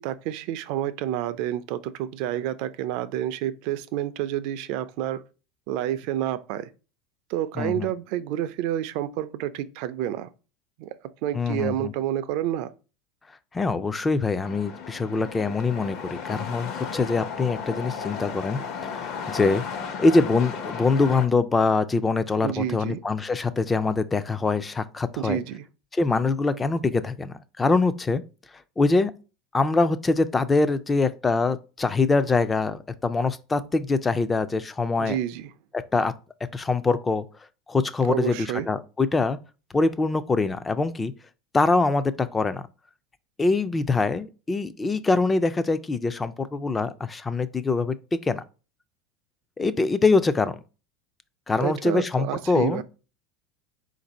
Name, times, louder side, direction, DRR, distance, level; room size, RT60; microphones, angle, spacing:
voice 1, 0.0-5.2 5.7-6.7 7.3-10.3 10.8-10.9 11.2-12.7 22.4-23.0 25.2-25.6 35.0-35.5 38.1-38.7 51.6-52.8, right 12 dB, 60° right, 0.4 m, -29 dB
voice 2, 7.6-7.9 11.3-11.9 13.5-25.4 25.9-28.2 28.8-29.1 29.5-35.2 35.7-36.1 36.5-37.2 37.7-39.4 39.7-41.1 41.5-42.7 43.4-48.4 49.6-50.6 51.5-52.8, left 3 dB, 15° left, 0.3 m, -24 dB
sound 1, 14.4-21.3, left 6 dB, 50° left, 0.8 m, -34 dB
4.3 x 2.6 x 4.0 m
supercardioid pair, 140°, 0 cm